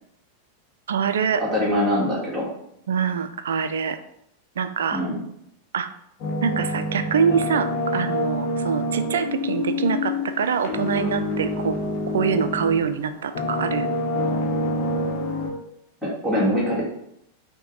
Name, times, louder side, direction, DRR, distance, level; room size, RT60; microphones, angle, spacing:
voice 1, 0.9-1.5 2.9-4.0 4.6-5.0 5.7-5.9 6.4-11.8 12.1-13.9, right 6 dB, 65° right, 10 dB, 0.3 m, -24 dB
voice 2, 1.4-2.5 4.9-5.1 16.0-16.8, equal, 5° right, -7 dB, 1.6 m, -23 dB
sound 1, 6.2-12.9 13.3-15.5, left 1 dB, 45° left, 1.0 m, -26 dB
5.6 x 2.2 x 3.9 m, 0.77 s
figure-of-eight pair, 90°, 0 cm